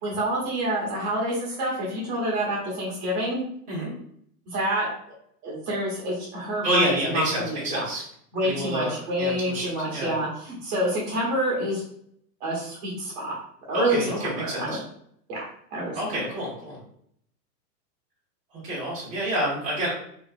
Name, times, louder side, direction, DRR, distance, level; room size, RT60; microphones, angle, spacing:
voice 1, 0.0-3.4 4.5-4.9 5.4-7.8 8.3-11.8 12.4-13.3 13.7-14.8 15.3-15.4 15.7-16.0, right 1 dB, 40° right, -4 dB, 1.3 m, -27 dB
voice 2, 6.6-8.0 8.4-10.1 13.7-14.8 15.9-16.8 18.6-19.9, right 1 dB, 15° right, -9 dB, 1.2 m, -28 dB
3.1 x 2.9 x 2.4 m, 0.67 s
hypercardioid pair, 155°, 49 cm